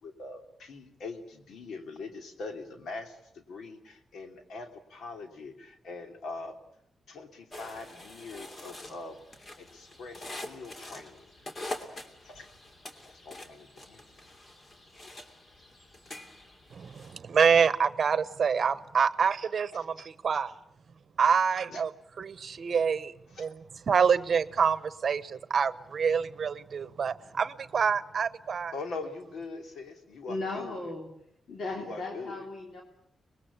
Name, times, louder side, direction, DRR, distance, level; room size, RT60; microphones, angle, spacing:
voice 1, 0.0-6.6 7.1-11.3 12.2-12.5 13.0-14.0 20.0-20.1 21.7-21.8 23.3-23.5 28.7-30.9 31.7-32.5, left 3 dB, 85° left, 6 dB, 2.9 m, -42 dB
sound 1, 7.5-17.2, left 1 dB, 40° left, 2.8 m, -45 dB
voice 2, 16.7-20.5 21.2-21.9 22.2-23.1 23.4-23.5 23.9-28.7, right 6 dB, 55° right, 16 dB, 0.9 m, -26 dB
voice 3, 30.3-31.1 31.5-32.8, left 2 dB, 65° left, 1 dB, 3.4 m, -36 dB
25.0 x 20.5 x 8.5 m, 0.76 s
cardioid pair, 95°, 0 cm